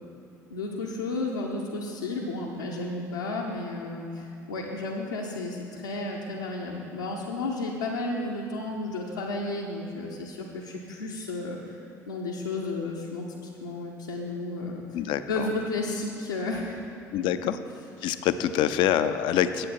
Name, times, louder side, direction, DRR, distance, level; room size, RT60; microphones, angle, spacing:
voice 1, 0.5-11.8 12.1-14.8 15.3-16.8, left 2 dB, 80° left, -4 dB, 0.8 m, -32 dB
voice 2, 14.9-15.5 17.1-17.6 18.0-19.7, left 10 dB, 55° left, 11 dB, 0.5 m, -25 dB
8.8 x 8.2 x 5.8 m, 2.5 s
figure-of-eight pair, 55°, 10 cm